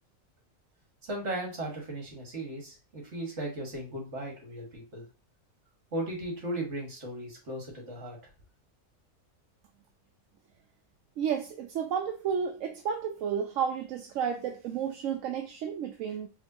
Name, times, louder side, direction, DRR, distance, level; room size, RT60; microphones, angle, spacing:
voice 1, 1.1-5.0 5.9-8.2, right 1 dB, 55° right, 0 dB, 1.8 m, -36 dB
voice 2, 11.2-16.3, right 7 dB, 70° right, 5 dB, 0.9 m, -32 dB
4.7 x 3.0 x 2.7 m, 0.31 s
omnidirectional pair, 1.5 m